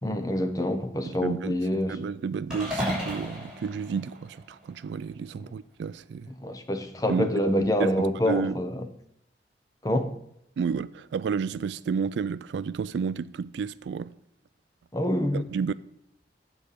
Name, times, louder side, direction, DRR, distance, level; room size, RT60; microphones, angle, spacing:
voice 1, 0.0-2.0 6.3-8.8 9.8-10.1 14.9-15.5, left 1 dB, 20° left, 0.7 m, -26 dB
voice 2, 1.1-6.3 7.1-7.3 7.8-8.6 10.6-14.1 15.3-15.7, right 6 dB, 75° right, 0.3 m, -31 dB
sound 1, 2.5-4.8, equal, 5° right, 3.4 m, -34 dB
8.0 x 4.9 x 6.7 m
head